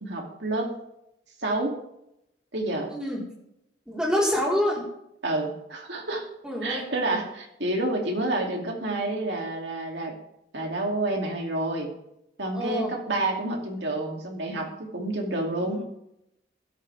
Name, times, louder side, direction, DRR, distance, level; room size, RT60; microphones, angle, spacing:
voice 1, 0.0-0.8 1.4-1.8 2.5-2.9 5.2-6.2 6.6-10.1 10.5-11.9 12.4-15.8, right 2 dB, 65° right, 1 dB, 2.8 m, -29 dB
voice 2, 2.9-3.2 3.9-4.8 6.4-6.8 12.5-12.9 15.7-15.8, equal, 5° right, -4 dB, 4.2 m, -26 dB
16.0 x 13.0 x 3.5 m, 0.81 s
head